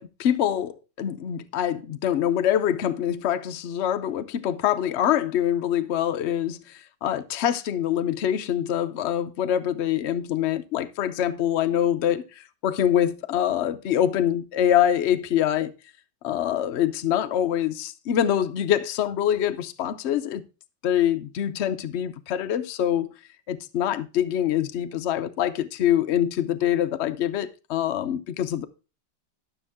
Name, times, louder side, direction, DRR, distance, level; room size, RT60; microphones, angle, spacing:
voice 1, 0.0-15.7 16.2-20.4 20.8-23.1 23.5-28.7, left 10 dB, 85° left, 0.6 m, -25 dB
12.5 x 7.0 x 3.5 m
omnidirectional pair, 2.0 m